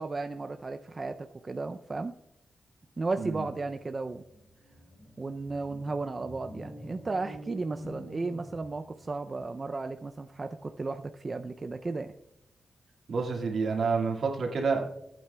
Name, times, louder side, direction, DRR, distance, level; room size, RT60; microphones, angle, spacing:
voice 1, 0.0-2.1 3.0-4.2 5.2-12.1, right 3 dB, 35° right, 7 dB, 0.4 m, -34 dB
sound 1, 4.2-9.2, equal, 15° left, 3.3 m, -46 dB
voice 2, 13.1-14.8, right 4 dB, 70° right, 1 dB, 1.8 m, -28 dB
18.0 x 8.7 x 2.2 m, 0.85 s
wide cardioid pair, 105°, 0 cm